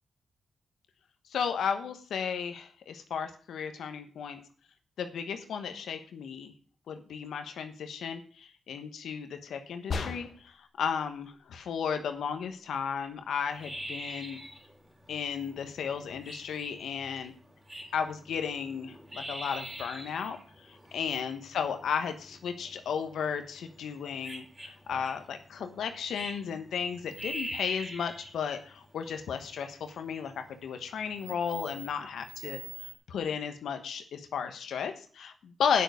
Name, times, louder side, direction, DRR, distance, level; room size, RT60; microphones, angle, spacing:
voice 1, 1.3-4.4 5.0-6.5 6.9-14.4 15.1-17.3 17.9-20.4 20.9-24.4 24.9-32.6 33.1-35.8, left 7 dB, 85° left, 7 dB, 1.2 m, -34 dB
sound 1, 9.9-10.6, left 4 dB, 60° left, 1.2 m, -34 dB
sound 2, 13.5-33.0, right 1 dB, 15° right, 3.6 m, -44 dB
9.0 x 6.4 x 6.7 m, 0.43 s
cardioid pair, 70°, 0 cm